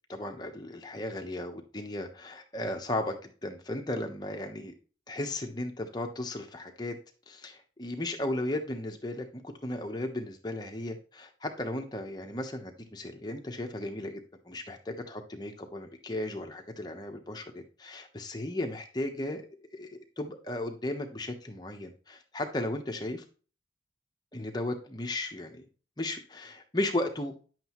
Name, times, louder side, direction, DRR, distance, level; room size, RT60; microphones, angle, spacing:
voice 1, 0.1-4.7 5.1-7.0 7.3-19.4 19.7-19.9 20.2-23.2 24.3-25.7 26.0-27.4, left 1 dB, 25° left, 4 dB, 1.0 m, -35 dB
10.0 x 7.7 x 3.1 m, 0.38 s
head